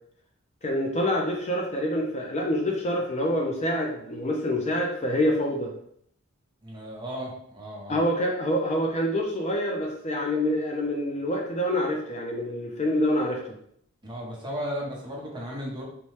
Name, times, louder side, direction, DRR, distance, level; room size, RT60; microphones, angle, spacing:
voice 1, 0.6-5.7 7.9-13.4, left 1 dB, 30° left, 0 dB, 0.5 m, -26 dB
voice 2, 6.6-8.0 14.0-15.8, equal, 20° right, -3 dB, 0.9 m, -35 dB
4.1 x 2.2 x 3.1 m, 0.67 s
head